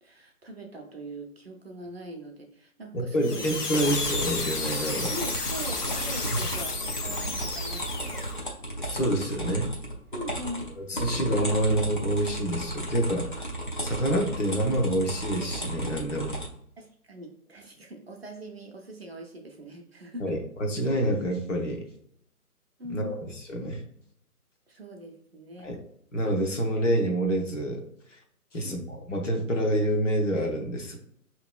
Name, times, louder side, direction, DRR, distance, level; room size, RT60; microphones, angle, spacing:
voice 1, 0.0-3.5 5.1-8.2 10.1-10.7 16.8-20.4 22.8-23.3 24.7-25.7 28.5-28.9, right 1 dB, 45° right, 1 dB, 0.6 m, -41 dB
voice 2, 2.9-5.1 6.3-6.5 8.8-9.7 10.8-13.5 13.8-16.4 20.2-21.8 22.9-23.8 25.6-25.8 26.1-27.8 28.5-31.0, right 1 dB, 55° left, 0 dB, 0.9 m, -27 dB
sound 1, 3.2-8.4, left 3 dB, 85° left, 0.9 m, -32 dB
sound 2, 3.4-16.5, right 1 dB, 35° left, 0.5 m, -34 dB
5.3 x 2.9 x 2.2 m, 0.70 s
figure-of-eight pair, 145°, 45 cm